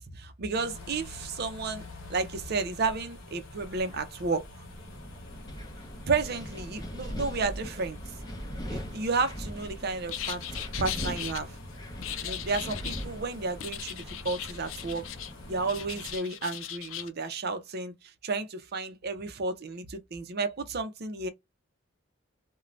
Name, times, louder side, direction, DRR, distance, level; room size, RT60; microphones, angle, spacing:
voice 1, 0.1-1.8 2.1-4.4 6.1-8.0 8.7-11.6 12.2-15.0 15.4-21.3, right 4 dB, 50° right, 0.6 m, -32 dB
sound 1, 0.5-16.1, left 2 dB, 90° left, 0.8 m, -47 dB
Wind, 4.7-16.2, equal, 20° left, 0.6 m, -41 dB
sound 2, 10.1-11.4 12.0-13.1 13.6-15.3 15.6-17.1, left 11 dB, 70° left, 0.4 m, -38 dB
2.6 x 2.2 x 3.1 m
head